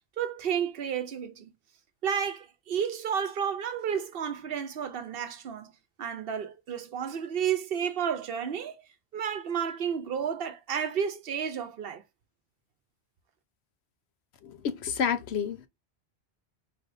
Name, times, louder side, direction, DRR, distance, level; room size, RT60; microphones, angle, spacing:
voice 1, 0.2-1.5 2.0-5.7 6.0-8.8 9.1-12.0, right 8 dB, 65° right, 0.8 m, -31 dB
voice 2, 14.4-15.7, left 7 dB, 75° left, 0.9 m, -30 dB
4.3 x 3.3 x 2.6 m
omnidirectional pair, 1.1 m